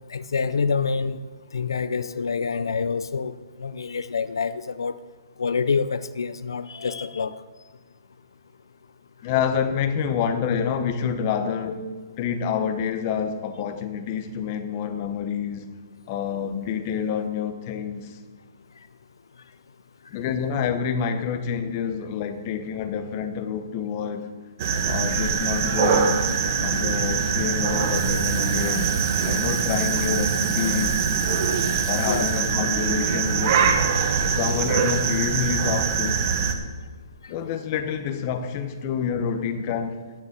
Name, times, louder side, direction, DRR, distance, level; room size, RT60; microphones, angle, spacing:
voice 1, 0.1-1.2 1.5-4.9 5.4-7.4 32.0-32.3 37.2-37.3, left 5 dB, 90° left, 14 dB, 0.5 m, -27 dB
voice 2, 9.2-11.9 12.2-15.7 16.1-18.2 20.1-24.3 24.9-26.3 26.6-28.9 29.2-31.0 31.8-33.6 34.3-36.2 37.3-40.0, left 7 dB, 30° left, 8 dB, 1.0 m, -27 dB
sound 1, 24.6-36.5, right 6 dB, 40° right, 1.2 m, -23 dB
Water tap faucet / Sink (filling or washing), 27.7-33.0, right 6 dB, 55° right, 1.7 m, -39 dB
10.0 x 6.7 x 8.1 m, 1.4 s
hypercardioid pair, 160°, 2 cm